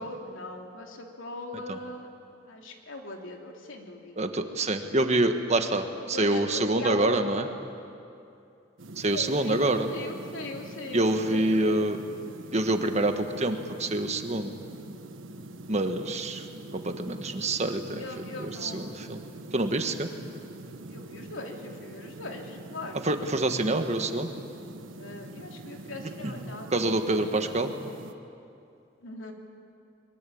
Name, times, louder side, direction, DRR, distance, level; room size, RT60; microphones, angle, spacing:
voice 1, 0.0-2.1 2.5-4.3 6.1-7.2 9.1-11.7 18.0-19.2 20.9-23.1 25.0-26.8 27.1-27.2 29.0-29.3, left 2 dB, 85° left, 2 dB, 3.1 m, -40 dB
voice 2, 4.2-7.5 9.0-9.9 10.9-12.0 12.5-14.5 15.7-16.4 16.7-18.0 18.4-19.2 19.5-20.1 23.0-24.3 26.2-26.4 26.7-27.7, right 2 dB, 35° right, 6 dB, 1.5 m, -26 dB
sound 1, 8.8-28.1, right 1 dB, 90° right, 1.4 m, -44 dB
23.5 x 23.0 x 8.7 m, 2.6 s
head